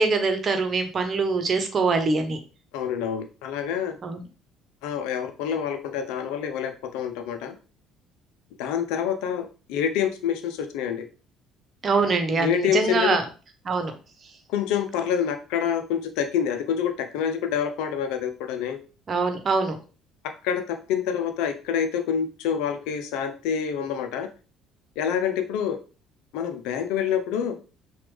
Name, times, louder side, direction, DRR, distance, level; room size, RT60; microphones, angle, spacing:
voice 1, 0.0-2.4 4.0-4.2 11.8-13.2 13.6-13.9 19.1-19.8, right 4 dB, 40° right, 7 dB, 1.1 m, -23 dB
voice 2, 2.7-4.0 4.8-7.5 8.6-11.0 12.4-13.1 14.5-18.8 20.2-24.3 25.0-25.8 26.3-27.5, left 8 dB, 70° left, 7 dB, 0.7 m, -27 dB
5.9 x 2.6 x 3.4 m, 0.34 s
hypercardioid pair, 55°, 0 cm